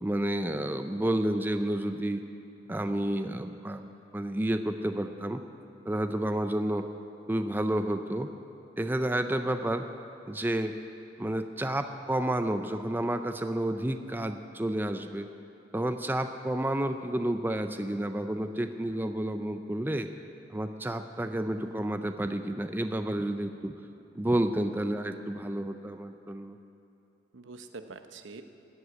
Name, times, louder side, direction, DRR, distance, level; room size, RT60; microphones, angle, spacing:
voice 1, 0.0-2.2 2.7-5.4 5.9-6.9 7.3-8.3 8.8-9.9 10.3-10.8 11.2-15.3 15.7-20.1 20.5-23.7 24.2-26.6, right 1 dB, 10° right, 8 dB, 0.4 m, -30 dB
voice 2, 21.6-22.5 27.3-28.4, right 3 dB, 80° right, 8 dB, 0.8 m, -46 dB
14.5 x 8.0 x 9.4 m, 2.7 s
head